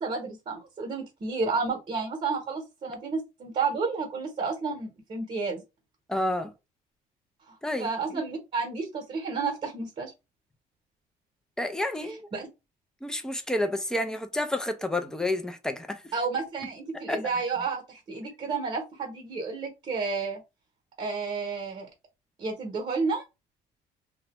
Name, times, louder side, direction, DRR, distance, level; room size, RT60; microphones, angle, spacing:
voice 1, 0.0-5.6 7.5-10.1 12.0-12.5 16.1-20.4 21.0-21.9 22.4-23.2, right 4 dB, 35° right, 0.9 m, -31 dB
voice 2, 6.1-6.5 7.6-8.2 11.6-12.3 13.0-16.0 17.1-17.2, left 1 dB, 5° left, 0.4 m, -30 dB
2.4 x 2.1 x 2.9 m
cardioid pair, 110°, 17 cm